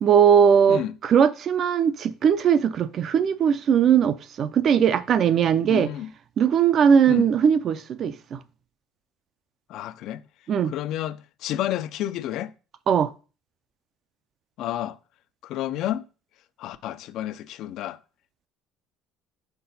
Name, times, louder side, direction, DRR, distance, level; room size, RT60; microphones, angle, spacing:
voice 1, 0.0-5.9 6.4-8.4 10.5-10.7 12.9-13.1, right 8 dB, 35° right, 0.3 m, -19 dB
voice 2, 5.7-6.1 7.1-7.3 9.7-10.2 10.6-12.5 14.6-15.0 15.4-16.0 16.6-18.0, left 12 dB, 50° left, 0.3 m, -30 dB
5.9 x 4.7 x 4.0 m
cardioid pair, 175°, 0 cm